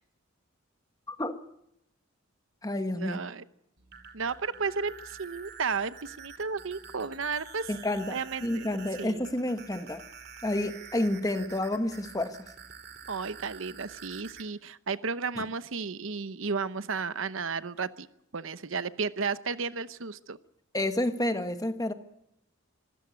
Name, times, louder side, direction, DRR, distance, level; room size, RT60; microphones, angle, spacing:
voice 1, 1.1-1.4 2.6-3.2 7.7-10.0 10.4-12.4 20.7-21.9, left 1 dB, 15° left, 1.3 m, -30 dB
voice 2, 3.0-3.4 4.1-7.7 8.1-8.6 9.0-9.2 13.1-18.1 18.3-20.4, right 5 dB, 65° right, 0.8 m, -33 dB
sound 1, 3.8-14.4, right 6 dB, 50° right, 2.6 m, -48 dB
24.5 x 15.5 x 9.5 m
head